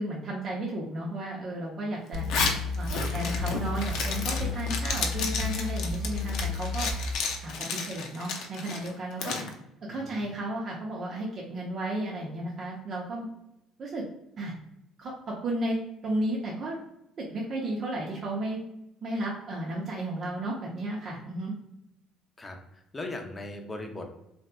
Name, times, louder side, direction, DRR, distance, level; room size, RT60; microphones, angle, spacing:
voice 1, 0.0-2.3 2.8-6.9 7.4-9.4 9.9-13.3 13.8-14.0 14.4-14.5 15.0-15.8 16.0-16.8 17.2-18.6 19.0-21.5, right 1 dB, 50° right, -3 dB, 0.6 m, -33 dB
Zipper (clothing), 2.1-9.5, left 4 dB, 70° left, 0.5 m, -32 dB
sound 1, 2.1-7.2, left 3 dB, 85° right, 0.9 m, -32 dB
voice 2, 22.4-24.1, left 2 dB, 25° left, 3 dB, 0.6 m, -38 dB
3.2 x 2.8 x 2.2 m, 0.86 s
supercardioid pair, 70°, 0 cm